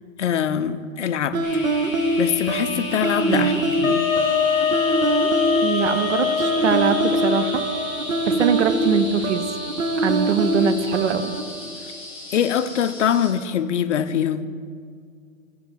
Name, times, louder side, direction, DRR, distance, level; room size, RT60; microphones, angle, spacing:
voice 1, 0.2-1.4 2.2-4.0 12.3-14.5, left 8 dB, 60° left, 11 dB, 0.5 m, -23 dB
sound 1, 1.3-11.4, right 1 dB, 80° right, 0.9 m, -24 dB
sound 2, 1.4-13.3, left 1 dB, 5° right, 1.2 m, -34 dB
Wind instrument woodwind instrument, 3.8-8.2, left 7 dB, 45° left, 1.3 m, -24 dB
voice 2, 5.6-7.6 8.2-9.5 10.0-11.3, right 8 dB, 60° right, 11 dB, 0.6 m, -23 dB
7.0 x 4.6 x 6.8 m, 2.1 s
hypercardioid pair, 160°, 40 cm